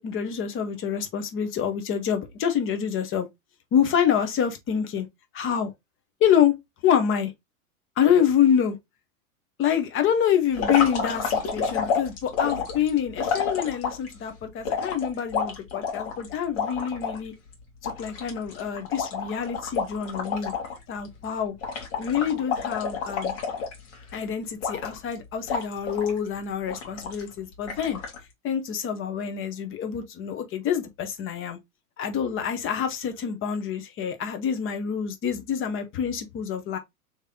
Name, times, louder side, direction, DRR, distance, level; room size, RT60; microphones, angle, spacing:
voice 1, 0.0-3.3 3.7-5.1 5.3-5.7 6.2-6.5 6.8-7.3 8.0-8.8 9.6-17.3 17.8-20.5 20.9-21.5 22.0-23.3 24.1-28.0 28.4-31.6 32.0-36.8, left 8 dB, 30° left, 1.0 m, -26 dB
sound 1, 10.5-14.1 14.7-17.2 17.5-17.6 17.8-20.8 21.0-21.3 21.6-24.1 24.6-25.1 25.5-26.2 26.7-27.3 27.7-28.2, left 6 dB, 50° left, 1.6 m, -29 dB
3.2 x 2.9 x 3.6 m
hypercardioid pair, 105°, 43 cm